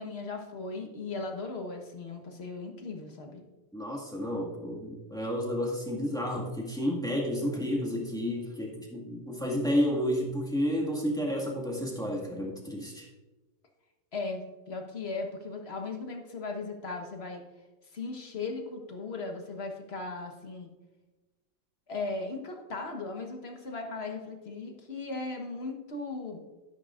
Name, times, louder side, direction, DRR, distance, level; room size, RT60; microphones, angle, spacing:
voice 1, 0.0-3.4 14.1-17.4 17.9-20.7 21.9-26.4, left 3 dB, 40° left, 3 dB, 1.3 m, -37 dB
voice 2, 3.7-13.1, equal, ahead, -2 dB, 1.6 m, -31 dB
12.5 x 10.5 x 2.5 m, 1.1 s
omnidirectional pair, 2.1 m